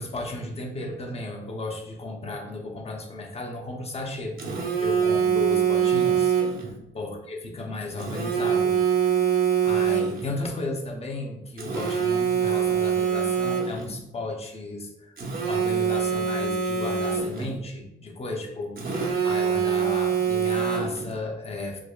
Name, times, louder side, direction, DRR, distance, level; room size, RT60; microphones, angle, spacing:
voice 1, 0.0-4.3 4.8-6.4 6.9-8.8 9.6-15.1 15.5-21.8, left 2 dB, 30° left, 1 dB, 0.7 m, -34 dB
Telephone, 4.4-6.7 8.0-10.4 11.6-13.9 15.2-17.5 18.8-21.1, right 7 dB, 45° right, 0.7 m, -24 dB
4.7 x 2.1 x 2.3 m, 0.87 s
cardioid pair, 90°, 20 cm